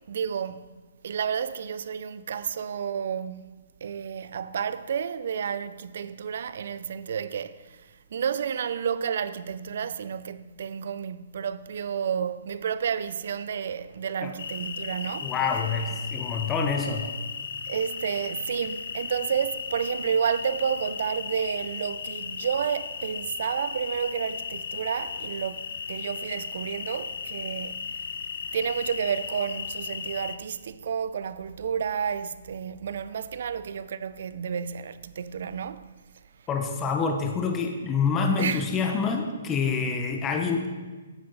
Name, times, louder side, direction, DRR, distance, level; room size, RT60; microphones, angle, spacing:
voice 1, 0.1-0.7 1.0-3.4 3.8-15.3 17.7-28.0 28.5-35.9 38.4-38.7, right 7 dB, 65° right, 0.4 m, -31 dB
sound 1, 14.4-30.4, left 6 dB, 70° left, 0.6 m, -36 dB
voice 2, 15.2-17.1 36.5-40.7, left 5 dB, 20° left, 0.8 m, -27 dB
9.3 x 7.8 x 3.9 m
hypercardioid pair, 145°, 0 cm